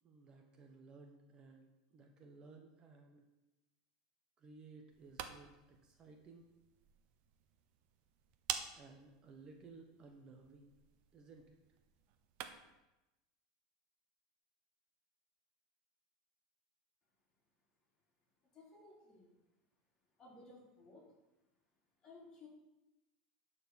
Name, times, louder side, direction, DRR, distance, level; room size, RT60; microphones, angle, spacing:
voice 1, 0.0-3.2 4.4-6.5 8.7-10.7 11.1-11.6, right 4 dB, 30° right, 3 dB, 1.2 m, -58 dB
sound 1, 4.9-12.8, right 9 dB, 50° right, 0.9 m, -49 dB
voice 2, 18.5-19.4 20.2-21.1 22.0-22.5, left 3 dB, 25° left, -3 dB, 3.9 m, -58 dB
11.5 x 4.4 x 7.0 m, 1.0 s
supercardioid pair, 135°, 3 cm